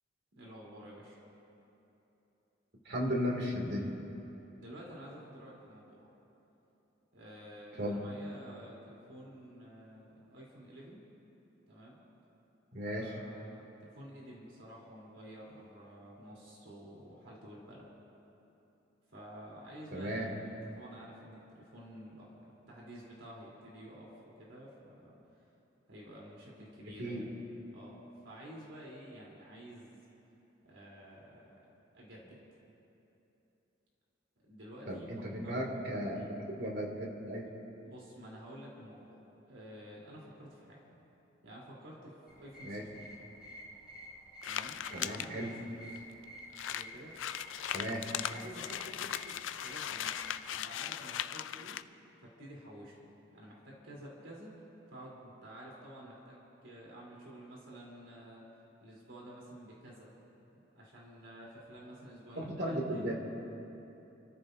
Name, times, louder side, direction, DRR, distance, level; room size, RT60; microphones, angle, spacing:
voice 1, 0.3-1.2 4.6-6.1 7.1-11.0 11.7-12.0 13.0-17.9 19.1-25.1 25.9-27.2 27.7-30.0 30.6-31.6 31.9-32.4 34.5-35.1 35.4-35.6 36.1-36.3 37.8-40.8 41.4-43.1 44.4-45.8 46.7-47.1 47.9-50.2 50.5-51.8 52.2-52.9 53.3-58.4 58.8-60.1 60.5-63.1, equal, 80° right, -5 dB, 3.5 m, -51 dB
voice 2, 2.8-3.9 7.8-8.1 12.7-13.1 19.9-20.3 27.0-27.3 34.9-37.5 42.6-42.8 44.9-45.5 47.7-48.0 62.4-63.1, equal, 60° right, -1 dB, 2.4 m, -35 dB
sound 1, 42.3-50.4, equal, 5° right, 4.3 m, -50 dB
sound 2, 44.4-45.3 46.0-46.1 46.2-46.3 46.5-51.8, left 10 dB, 80° left, 0.4 m, -38 dB
30.0 x 14.5 x 2.7 m, 3.0 s
head